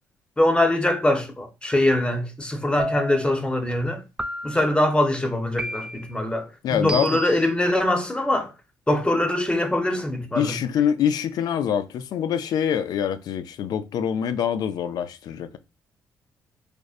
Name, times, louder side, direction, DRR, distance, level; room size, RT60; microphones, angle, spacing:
voice 1, 0.4-4.0 4.4-8.5 8.9-10.6, left 1 dB, 15° left, 0.7 m, -23 dB
sound 1, 2.8-3.4 4.2-4.8 5.6-6.2 6.9-7.5, right 1 dB, 15° right, 0.3 m, -31 dB
voice 2, 6.6-7.2 10.3-15.6, left 8 dB, 75° left, 0.4 m, -25 dB
4.9 x 2.0 x 2.4 m
cardioid pair, 75°, 7 cm